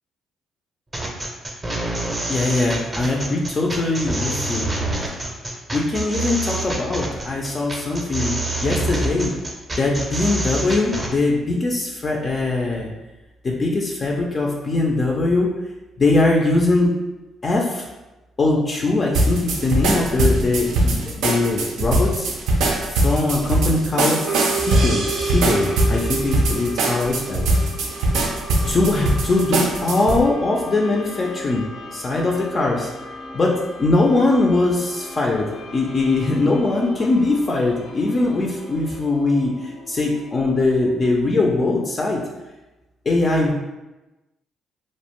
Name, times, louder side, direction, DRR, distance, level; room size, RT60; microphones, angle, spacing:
sound 1, 0.9-11.1, right 2 dB, 20° right, 0.5 m, -26 dB
voice 1, 2.3-4.7 5.7-9.3 9.8-12.9 13.4-15.5 16.0-16.9 17.4-17.9 18.4-22.3 22.9-27.5 28.7-32.9 33.3-42.2 43.1-43.5, left 2 dB, 35° left, -1 dB, 0.3 m, -21 dB
sound 2, 19.1-30.2, right 2 dB, 90° right, 0.4 m, -21 dB
sound 3, 24.2-41.3, right 2 dB, 80° left, 0.7 m, -34 dB
2.4 x 2.1 x 2.9 m, 1.1 s
cardioid pair, 90°, 0 cm